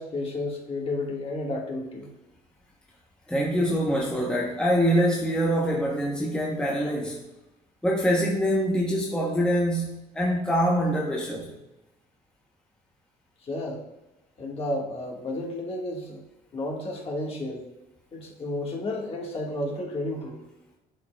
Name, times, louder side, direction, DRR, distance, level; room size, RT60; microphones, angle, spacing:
voice 1, 0.0-2.1 13.4-13.8 14.4-16.2 16.5-17.6 18.1-20.4, left 2 dB, 35° left, 1.6 m, -32 dB
voice 2, 3.3-7.2 7.8-11.5, equal, 5° left, 0.8 m, -24 dB
11.0 x 4.2 x 2.3 m
cardioid pair, 110°, 17 cm